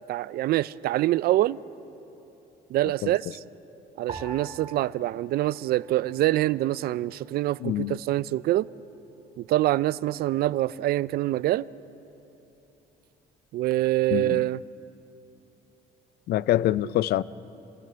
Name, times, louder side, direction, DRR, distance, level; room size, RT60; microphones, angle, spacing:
voice 1, 0.0-1.6 2.7-3.2 4.0-8.7 9.4-11.7 13.5-14.6, right 15 dB, 65° right, 0.4 m, -25 dB
sound 1, 4.1-6.6 6.9-7.8 8.4-8.8, right 3 dB, 35° right, 3.4 m, -44 dB
voice 2, 7.6-8.0 14.1-14.5 16.3-17.2, left 14 dB, 70° left, 0.5 m, -25 dB
26.5 x 17.5 x 6.9 m
cardioid pair, 110°, 17 cm